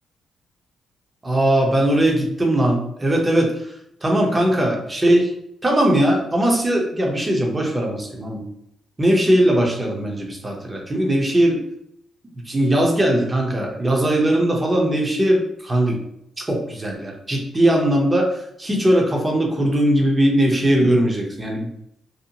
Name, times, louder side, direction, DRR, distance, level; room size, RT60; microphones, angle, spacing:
voice 1, 1.2-3.7 4.0-5.3 5.6-8.5 9.0-11.6 12.4-16.0 16.5-21.7, right 1 dB, 25° right, 0 dB, 0.7 m, -19 dB
2.7 x 2.1 x 2.7 m, 0.76 s
cardioid pair, 75°, 0 cm